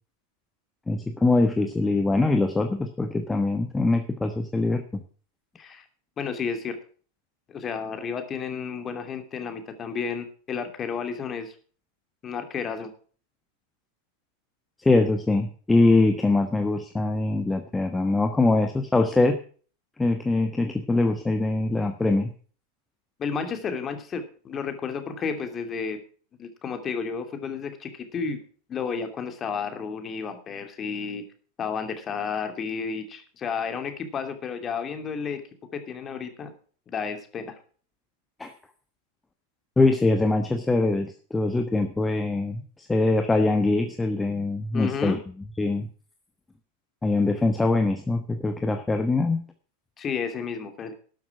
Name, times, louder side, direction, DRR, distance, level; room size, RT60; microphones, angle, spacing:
voice 1, 0.9-5.0 14.8-19.4 20.0-22.3 38.4-38.5 39.8-45.2 45.6-45.9 47.0-49.4, left 2 dB, 10° left, 7 dB, 1.2 m, -23 dB
voice 2, 5.5-5.8 6.2-6.8 7.5-11.5 12.2-12.9 23.2-26.0 26.4-28.4 28.7-31.2 31.6-35.4 35.7-36.5 36.9-37.5 44.7-45.2 50.0-50.9, left 6 dB, 25° left, 7 dB, 2.7 m, -32 dB
12.5 x 12.0 x 4.8 m, 0.43 s
figure-of-eight pair, 90°, 0 cm